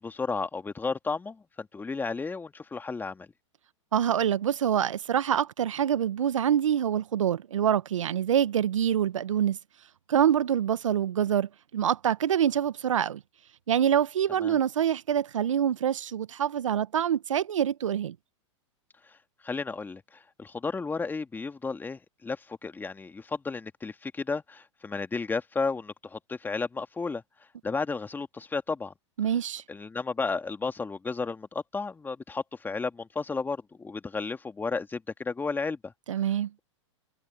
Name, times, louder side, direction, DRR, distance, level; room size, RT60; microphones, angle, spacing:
voice 1, 0.0-3.3 14.4-14.6 19.1-19.2 19.4-27.2 27.6-28.9 29.7-35.9, left 4 dB, 10° left, 2.0 m, -33 dB
voice 2, 3.9-9.6 10.1-13.2 13.7-18.1 29.2-29.6 36.1-36.5, right 9 dB, 80° right, 1.2 m, -25 dB
hypercardioid pair, 110°, 16 cm